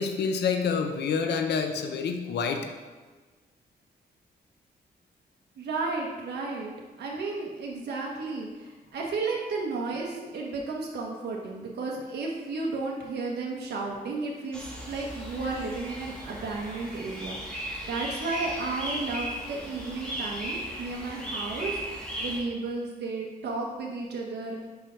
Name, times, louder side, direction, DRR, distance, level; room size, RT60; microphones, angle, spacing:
voice 1, 0.0-2.7, left 5 dB, 90° left, 5 dB, 0.7 m, -27 dB
voice 2, 5.6-6.7 7.0-24.6, right 3 dB, 80° right, -2 dB, 1.0 m, -33 dB
sound 1, 14.5-22.4, equal, 5° left, 1.5 m, -37 dB
5.0 x 4.7 x 5.6 m, 1.3 s
wide cardioid pair, 120°, 17 cm